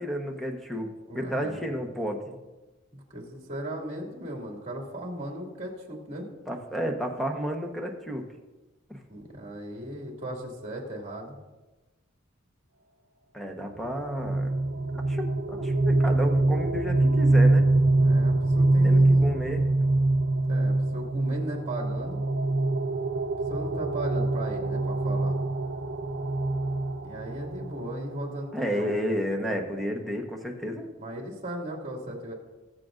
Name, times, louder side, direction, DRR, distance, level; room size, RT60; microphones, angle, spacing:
voice 1, 0.0-2.3 6.5-8.3 8.9-9.0 13.3-14.5 14.9-17.7 18.8-19.6 28.5-30.9, equal, ahead, 3 dB, 1.1 m, -31 dB
voice 2, 1.1-1.6 2.9-6.3 9.1-11.3 18.0-19.3 20.5-22.2 23.5-25.4 27.0-29.0 31.0-32.3, right 1 dB, 35° right, -1 dB, 2.3 m, -37 dB
sound 1, 13.8-28.5, right 2 dB, 65° right, 0.6 m, -24 dB
20.5 x 7.6 x 2.6 m, 1.2 s
head